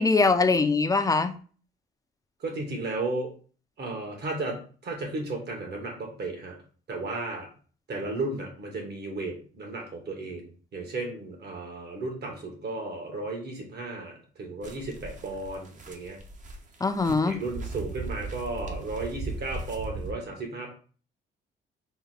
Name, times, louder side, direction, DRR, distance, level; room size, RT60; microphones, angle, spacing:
voice 1, 0.0-1.3 16.8-17.4, left 4 dB, 15° left, 8 dB, 0.4 m, -22 dB
voice 2, 2.4-3.3 3.8-6.6 6.9-7.5 7.9-16.2 17.2-20.8, right 2 dB, 55° right, 1 dB, 1.4 m, -34 dB
sound 1, 14.6-20.1, right 3 dB, 40° right, 0.8 m, -38 dB
4.1 x 2.2 x 3.9 m, 0.40 s
cardioid pair, 90°, 20 cm